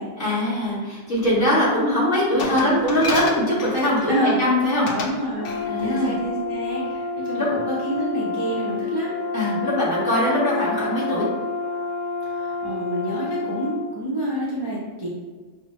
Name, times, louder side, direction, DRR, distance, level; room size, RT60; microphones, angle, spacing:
voice 1, 0.2-4.9 5.6-6.1 7.3-7.5 9.3-11.3, left 1 dB, 45° left, -8 dB, 1.6 m, -22 dB
Glass, 2.4-4.2 4.9-5.2 5.4-5.7, left 3 dB, 60° left, 0.7 m, -29 dB
voice 2, 4.1-4.4 4.9-5.5 5.8-9.1 12.4-15.1, right 1 dB, 30° right, -7 dB, 0.5 m, -28 dB
Brass instrument, 5.4-13.8, left 4 dB, 85° left, 1.2 m, -29 dB
5.8 x 2.0 x 3.0 m, 1.4 s
omnidirectional pair, 1.3 m